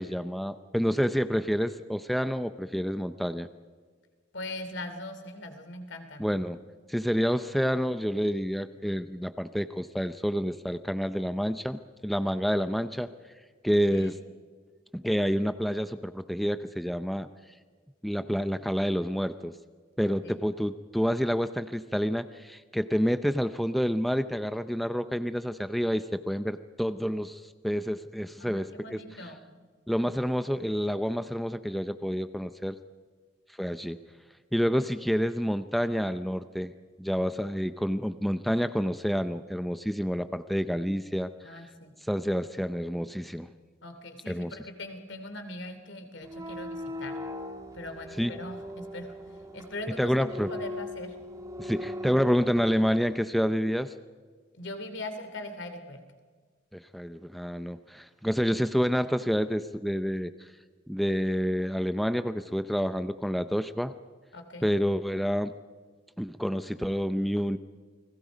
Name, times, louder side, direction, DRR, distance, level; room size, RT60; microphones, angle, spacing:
voice 1, 0.0-3.5 6.2-6.6 6.9-13.1 13.6-14.2 14.9-17.3 18.0-19.6 20.0-29.3 29.9-32.8 33.6-34.0 34.5-36.7 37.0-41.5 42.0-43.5 44.3-44.6 48.2-48.3 50.0-50.5 51.6-53.9 56.7-60.5 60.9-63.9 64.6-65.5 66.2-67.6, equal, ahead, 11 dB, 0.5 m, -28 dB
voice 2, 4.3-6.2 13.9-14.1 20.2-20.4 28.4-29.4 41.4-41.9 43.8-47.1 47.7-49.1 49.5-51.1 54.6-56.0 64.3-64.7, left 1 dB, 60° left, 7 dB, 2.9 m, -40 dB
sound 1, 46.2-53.2, left 1 dB, 15° right, 1.5 m, -39 dB
29.5 x 20.5 x 5.2 m, 1.5 s
head